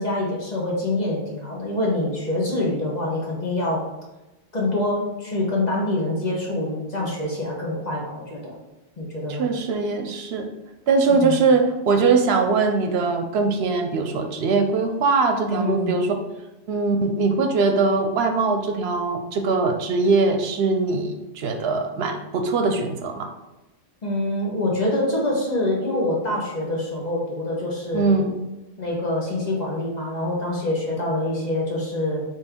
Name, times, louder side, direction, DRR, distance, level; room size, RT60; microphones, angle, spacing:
voice 1, 0.0-3.8 4.5-8.5 9.0-9.4 11.1-11.4 15.5-16.0 24.0-28.2 28.8-32.2, left 1 dB, 40° left, -3 dB, 1.2 m, -25 dB
voice 2, 9.3-10.5 10.9-16.1 16.7-23.3 27.9-28.3, right 4 dB, 70° right, 4 dB, 0.8 m, -21 dB
4.3 x 3.3 x 3.6 m, 1.0 s
omnidirectional pair, 1.1 m